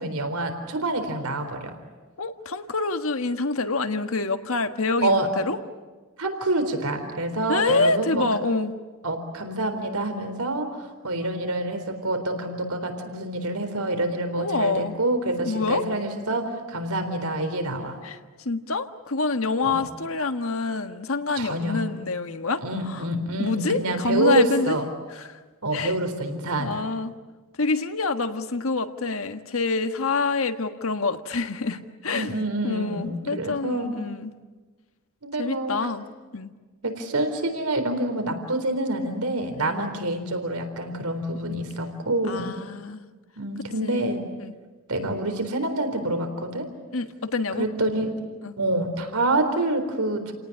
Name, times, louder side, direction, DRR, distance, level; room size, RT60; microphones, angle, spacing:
voice 1, 0.0-1.7 5.0-5.3 6.2-8.2 9.0-18.0 19.6-19.9 21.4-21.8 22.6-24.8 25.6-26.8 32.1-33.9 35.2-35.7 36.8-42.6 43.4-44.2 44.9-46.7 47.6-48.1 48.6-50.3, right 1 dB, 90° right, 6 dB, 4.0 m, -27 dB
voice 2, 2.2-5.6 7.5-8.7 14.4-15.0 15.4-15.8 18.0-23.0 23.4-24.8 25.1-25.4 25.7-25.9 26.6-27.2 27.6-32.3 32.6-34.3 35.4-36.1 36.3-36.5 39.6-39.9 41.5-41.6 42.3-43.1 43.8-44.1 44.4-44.5 46.9-47.7 48.4-48.5, left 3 dB, 70° left, 8 dB, 1.5 m, -27 dB
29.5 x 18.5 x 9.9 m, 1.3 s
head